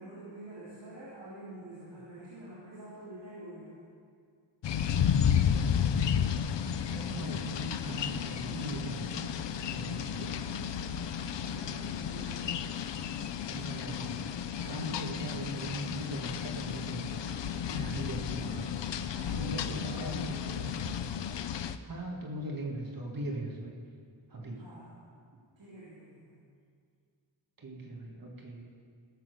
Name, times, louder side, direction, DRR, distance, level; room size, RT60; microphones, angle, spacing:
voice 1, 0.0-3.8 11.4-12.8 18.3-18.8 19.1-20.9 24.5-25.0 25.6-26.4, right 1 dB, 75° right, -9 dB, 3.7 m, -47 dB
sound 1, 4.6-21.8, left 8 dB, 70° left, 0.6 m, -33 dB
voice 2, 5.1-6.4 6.8-9.2 9.7-10.3 13.4-17.2 17.7-18.6 19.3-20.7 21.9-23.7 24.3-24.6 27.6-28.7, right 1 dB, 50° right, -1 dB, 1.9 m, -40 dB
17.0 x 7.5 x 6.5 m, 2.2 s
wide cardioid pair, 155°, 45 cm